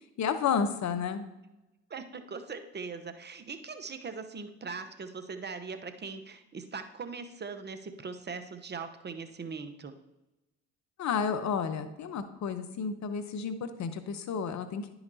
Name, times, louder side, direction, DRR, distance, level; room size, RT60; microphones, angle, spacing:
voice 1, 0.2-1.2 11.0-14.9, left 6 dB, 55° left, 10 dB, 0.9 m, -31 dB
voice 2, 1.9-9.9, right 5 dB, 30° right, 9 dB, 0.9 m, -40 dB
10.0 x 5.9 x 2.8 m, 0.97 s
hypercardioid pair, 60°, 34 cm